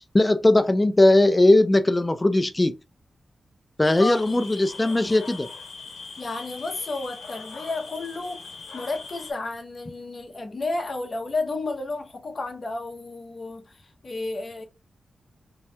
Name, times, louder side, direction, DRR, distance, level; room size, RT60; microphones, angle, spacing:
voice 1, 0.1-2.7 3.8-5.5, left 2 dB, 15° left, 0.4 m, -19 dB
sound 1, 3.8-9.3, left 4 dB, 85° left, 0.8 m, -41 dB
voice 2, 4.0-4.5 6.2-14.6, left 3 dB, 40° left, 0.7 m, -32 dB
2.7 x 2.3 x 3.2 m
wide cardioid pair, 130°, 0 cm